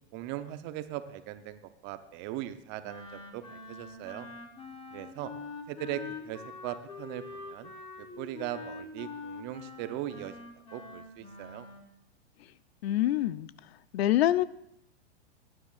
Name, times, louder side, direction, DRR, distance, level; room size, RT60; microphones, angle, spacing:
voice 1, 0.1-4.3 4.9-5.3 5.7-7.7 8.0-11.7, right 13 dB, 35° right, 11 dB, 0.7 m, -39 dB
Wind instrument woodwind instrument, 2.8-11.9, left 4 dB, 15° left, 1.2 m, -44 dB
voice 2, 12.8-13.5 13.9-14.4, left 13 dB, 65° left, 18 dB, 0.5 m, -25 dB
19.5 x 9.7 x 2.4 m, 0.77 s
hypercardioid pair, 125°, 34 cm